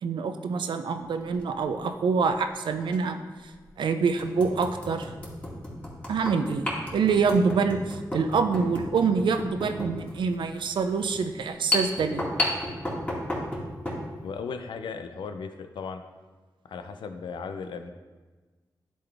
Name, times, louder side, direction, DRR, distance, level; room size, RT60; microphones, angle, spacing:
voice 1, 0.0-3.2 3.8-5.1 6.1-12.5, right 5 dB, 85° right, 8 dB, 0.5 m, -26 dB
sound 1, 1.2-1.4 2.9-3.0 3.5-3.6 4.2-14.0, left 1 dB, 20° left, 2.3 m, -33 dB
voice 2, 14.2-16.0 16.7-17.9, left 5 dB, 90° left, 8 dB, 0.5 m, -36 dB
10.0 x 3.9 x 3.5 m, 1.3 s
cardioid pair, 55°, 8 cm